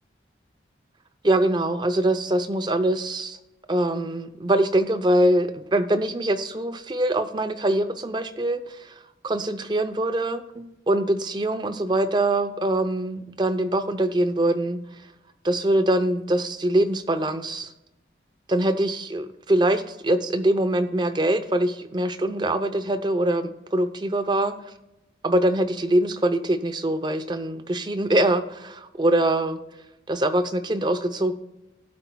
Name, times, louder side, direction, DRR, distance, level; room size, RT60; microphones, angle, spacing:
voice 1, 1.2-3.4 3.7-8.9 9.2-14.8 15.4-17.7 18.5-24.5 25.2-29.6 30.1-31.3, right 1 dB, 25° right, 10 dB, 0.6 m, -23 dB
18.5 x 8.1 x 2.2 m, 0.93 s
head